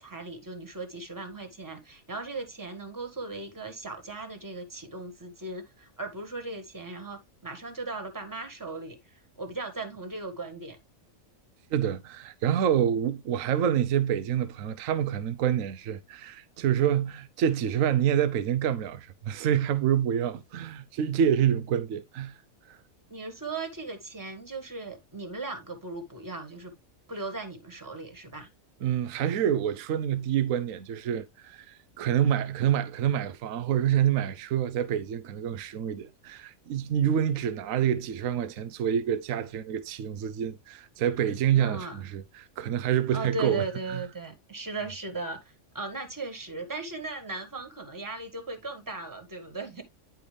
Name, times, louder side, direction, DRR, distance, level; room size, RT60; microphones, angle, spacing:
voice 1, 0.0-9.0 9.4-10.8 23.1-26.7 27.1-28.5 41.5-42.0 43.1-49.8, right 3 dB, 15° right, 1.7 m, -37 dB
voice 2, 11.7-22.3 22.7-22.8 28.8-44.0, right 9 dB, 75° right, 1.0 m, -27 dB
10.5 x 4.6 x 3.3 m
omnidirectional pair, 1.5 m